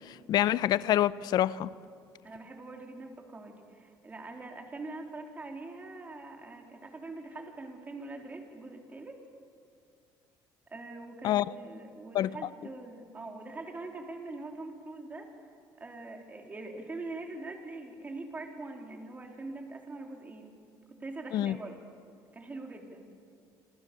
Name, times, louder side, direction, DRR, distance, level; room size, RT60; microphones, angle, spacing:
voice 1, 0.1-1.7 11.2-11.5 12.1-12.3 21.3-21.6, left 12 dB, 55° left, 18 dB, 0.7 m, -26 dB
voice 2, 2.2-9.2 10.7-15.3 15.8-20.5 20.9-21.8 22.3-23.1, right 2 dB, 20° right, 2 dB, 3.8 m, -43 dB
28.0 x 26.5 x 7.0 m, 2.3 s
cardioid pair, 135°, 8 cm